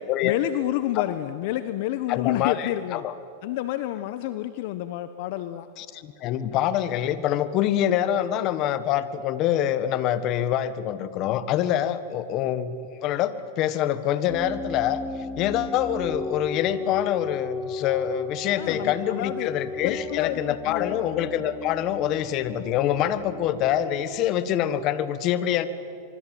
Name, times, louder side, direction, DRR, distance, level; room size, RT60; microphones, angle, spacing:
voice 1, 0.2-3.0 3.4-5.7 18.6-19.5 19.8-21.1, left 14 dB, 60° left, 12 dB, 1.0 m, -29 dB
voice 2, 2.1-3.1 5.8-12.8 13.0-15.0 15.4-25.7, left 11 dB, 45° left, 14 dB, 1.6 m, -25 dB
sound 1, 14.3-24.3, left 3 dB, 10° left, 2.2 m, -35 dB
25.0 x 24.0 x 9.3 m, 2.6 s
hypercardioid pair, 125°, 0 cm